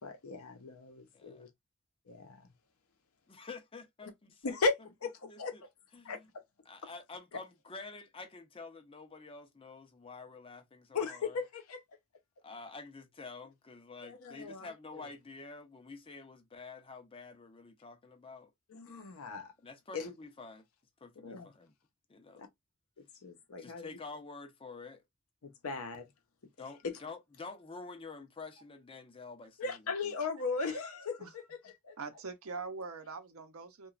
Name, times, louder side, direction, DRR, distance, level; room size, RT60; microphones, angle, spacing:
voice 1, 0.0-1.5 2.1-2.5 4.4-5.5 6.0-6.3 10.9-11.8 14.0-15.0 18.7-19.5 19.9-20.1 21.2-21.5 22.4-22.5 23.2-23.9 25.4-26.1 26.8-26.9 29.6-31.2 31.8-32.0, left 4 dB, 75° left, 0.6 m, -37 dB
voice 2, 1.1-1.5 3.3-4.6 5.2-5.6 5.9-6.2 6.7-11.4 12.4-18.5 19.6-20.6 21.0-21.7 22.1-22.5 23.6-25.0 26.6-30.2, left 4 dB, 25° left, 0.5 m, -48 dB
voice 3, 32.0-33.9, right 4 dB, 70° right, 0.6 m, -43 dB
2.9 x 2.2 x 2.3 m
head